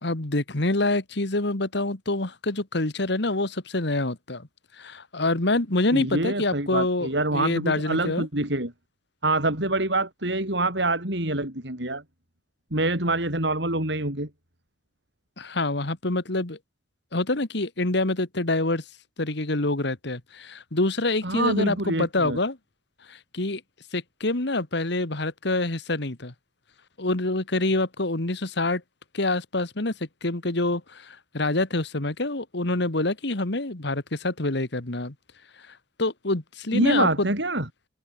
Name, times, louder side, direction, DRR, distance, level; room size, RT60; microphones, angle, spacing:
voice 1, 0.0-4.5 4.8-8.3 15.4-16.6 17.1-18.8 19.2-22.6 23.1-23.6 23.9-26.3 27.0-28.8 29.1-29.9 30.2-35.1 36.0-37.3, left 2 dB, 65° left, 2.1 m, -26 dB
voice 2, 5.9-8.7 9.2-12.0 12.7-14.3 21.2-22.4 36.7-37.7, right 2 dB, 65° right, 7.6 m, -25 dB
head